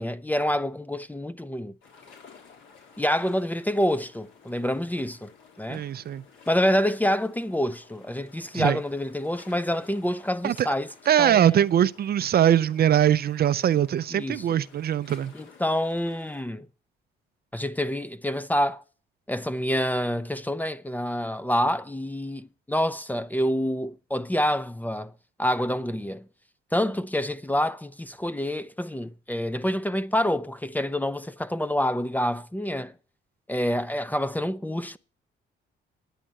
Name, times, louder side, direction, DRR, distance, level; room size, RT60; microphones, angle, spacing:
voice 1, 0.0-1.7 3.0-5.3 5.6-5.8 6.5-10.9 11.2-11.6 14.1-14.5 15.3-16.7 17.5-18.8 19.3-25.1 25.4-26.2 26.7-32.9 33.5-35.0, equal, 10° left, 0.5 m, -27 dB
sound 1, 1.8-16.4, left 6 dB, 75° left, 3.7 m, -53 dB
voice 2, 5.7-6.2 8.5-8.8 10.4-10.7 11.1-15.3, right 10 dB, 50° right, 0.5 m, -22 dB
10.0 x 8.2 x 7.5 m
cardioid pair, 90°, 20 cm